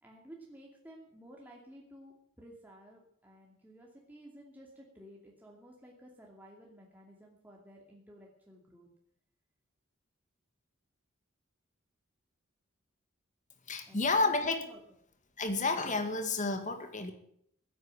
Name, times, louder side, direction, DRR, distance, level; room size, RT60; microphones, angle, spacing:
voice 1, 0.0-8.9 13.9-14.8, equal, 10° right, -3 dB, 2.5 m, -54 dB
voice 2, 13.7-14.7 15.4-17.1, left 3 dB, 40° left, 7 dB, 2.1 m, -30 dB
16.0 x 9.5 x 8.8 m, 0.69 s
head